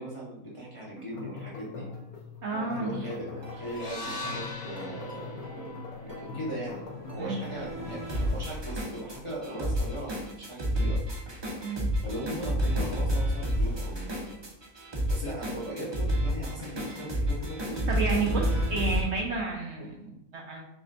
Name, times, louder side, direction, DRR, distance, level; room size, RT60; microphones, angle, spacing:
voice 1, 0.0-1.9 2.5-5.7 6.0-11.0 12.0-14.2 14.9-18.5 19.8-19.9, right 1 dB, 30° left, -6 dB, 0.6 m, -39 dB
sound 1, 1.0-8.5, left 4 dB, 80° left, 1.2 m, -42 dB
voice 2, 2.4-3.0 7.2-7.4 11.6-11.8 17.9-20.7, right 4 dB, 65° right, -1 dB, 0.7 m, -31 dB
sound 2, 3.1-19.0, equal, 35° right, 0.4 m, -31 dB
sound 3, 3.7-7.9, left 1 dB, 60° left, 0.9 m, -42 dB
5.8 x 2.1 x 2.5 m, 0.87 s
omnidirectional pair, 1.5 m